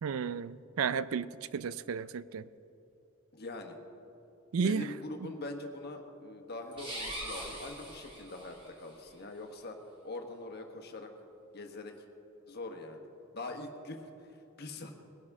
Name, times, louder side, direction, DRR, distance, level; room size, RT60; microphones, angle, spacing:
voice 1, 0.0-2.5 4.5-4.9, right 6 dB, 80° right, 16 dB, 0.4 m, -33 dB
voice 2, 3.3-3.8 4.6-9.8 10.0-11.1 11.5-12.0 12.5-13.1 13.3-14.9, left 2 dB, 50° left, 4 dB, 1.4 m, -43 dB
sound 1, 6.7-8.7, right 1 dB, 25° right, 3.0 m, -41 dB
20.5 x 11.0 x 3.6 m, 3.0 s
head